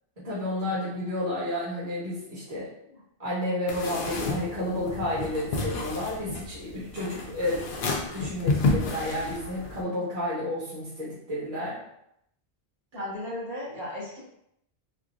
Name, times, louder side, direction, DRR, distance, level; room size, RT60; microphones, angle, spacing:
voice 1, 0.2-2.7 3.2-7.7 8.1-11.8, left 1 dB, 40° right, -11 dB, 1.3 m, -31 dB
sound 1, 3.7-9.8, left 3 dB, 65° left, 0.7 m, -31 dB
voice 2, 7.0-7.3 12.9-14.2, left 1 dB, 65° right, -10 dB, 1.7 m, -36 dB
4.2 x 2.1 x 2.4 m, 0.77 s
omnidirectional pair, 1.0 m